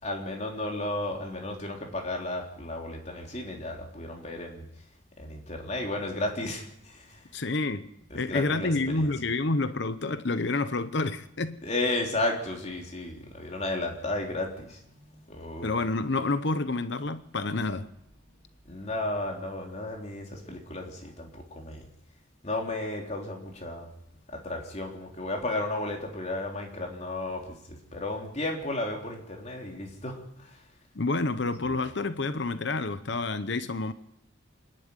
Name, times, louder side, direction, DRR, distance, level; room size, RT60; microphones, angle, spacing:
voice 1, 0.0-4.6 5.2-7.2 8.1-9.1 11.6-14.8 15.1-15.8 18.7-21.8 22.4-23.9 24.3-30.5 31.7-31.8, left 2 dB, 35° left, 3.7 m, -33 dB
voice 2, 7.3-7.9 8.1-11.6 15.6-17.9 30.9-33.9, left 3 dB, 60° left, 0.9 m, -28 dB
26.0 x 11.0 x 9.8 m
head